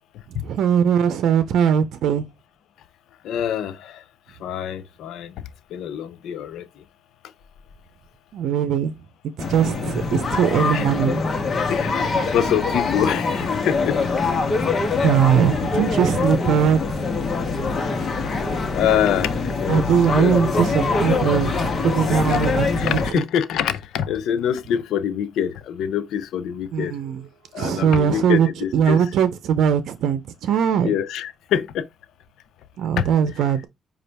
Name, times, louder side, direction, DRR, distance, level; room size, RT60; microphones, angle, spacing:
voice 1, 0.3-2.3 8.3-8.9 9.2-11.2 15.0-16.8 19.7-23.2 26.7-27.2 27.6-28.5 28.7-30.9 32.8-33.7, right 8 dB, 75° right, 0.6 m, -20 dB
voice 2, 3.2-4.0 4.4-5.3 5.7-6.7 10.7-10.9 11.7-14.0 18.7-19.9 20.2-20.4 22.3-22.4 22.7-27.0 27.5-29.0 30.8-31.9 33.0-33.1, left 9 dB, 80° left, 0.5 m, -25 dB
sound 1, 9.4-23.1, left 4 dB, 45° left, 0.9 m, -23 dB
5.1 x 2.5 x 3.3 m
cardioid pair, 90°, 0 cm